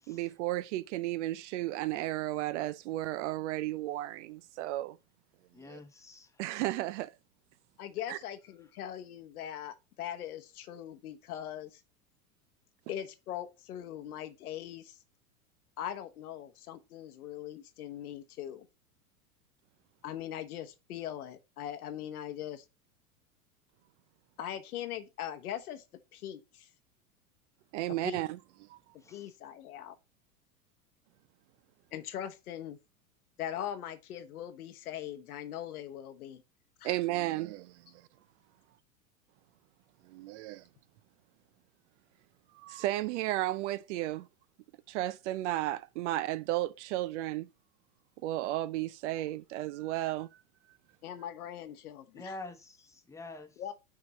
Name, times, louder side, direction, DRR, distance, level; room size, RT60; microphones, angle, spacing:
voice 1, 0.1-5.0 5.6-5.8 6.4-7.1 8.1-8.2 27.7-28.3 28.7-28.8 36.8-38.1 40.0-40.6 42.5-44.3 44.9-47.5 48.2-50.3, right 16 dB, 55° right, 0.5 m, -34 dB
voice 2, 5.5-6.3 29.0-29.3 52.1-53.5, left 2 dB, 5° left, 1.0 m, -46 dB
voice 3, 7.8-11.8 12.9-15.0 15.8-18.7 20.0-22.6 24.4-25.8 26.1-26.7 28.0-28.2 29.1-29.9 31.9-32.8 33.4-36.4 36.8-36.9 51.0-52.3 53.6-53.7, left 10 dB, 75° left, 1.1 m, -41 dB
6.1 x 3.8 x 4.0 m
hypercardioid pair, 110°, 45 cm